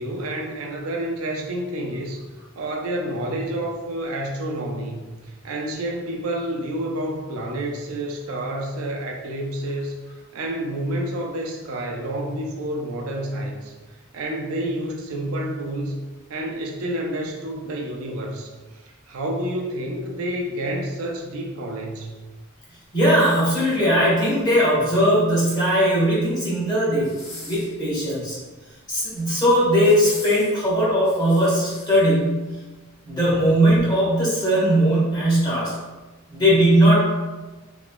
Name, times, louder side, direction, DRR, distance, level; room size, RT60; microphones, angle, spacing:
voice 1, 0.0-2.2 2.6-5.1 5.4-10.0 10.3-13.7 14.1-16.0 16.3-18.5 18.8-22.1, right 1 dB, 85° right, 1 dB, 0.5 m, -29 dB
voice 2, 22.9-27.1 27.4-28.4 28.9-32.4 33.1-35.7 36.3-37.0, equal, 20° left, -8 dB, 1.0 m, -19 dB
sound 1, 23.2-24.1 25.2-26.0 26.9-27.8 28.9-29.3 29.8-32.0 32.6-32.7, left 2 dB, 75° left, 1.0 m, -41 dB
3.0 x 3.0 x 2.2 m, 1.2 s
head